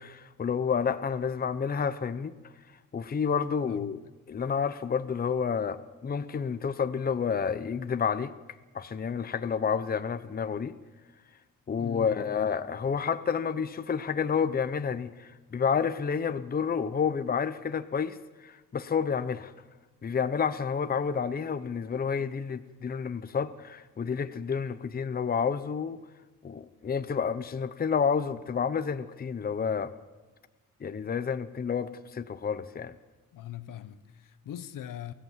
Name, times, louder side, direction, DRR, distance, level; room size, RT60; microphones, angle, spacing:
voice 1, 0.0-2.3 2.9-4.0 4.3-8.3 8.7-10.8 11.7-19.5 20.0-26.0 26.4-29.9 30.8-32.9, left 6 dB, 30° left, 0.8 m, -30 dB
voice 2, 3.6-4.0 11.8-12.2 33.3-35.1, left 10 dB, 75° left, 1.1 m, -41 dB
24.0 x 16.5 x 7.4 m
cardioid pair, 140°, 33 cm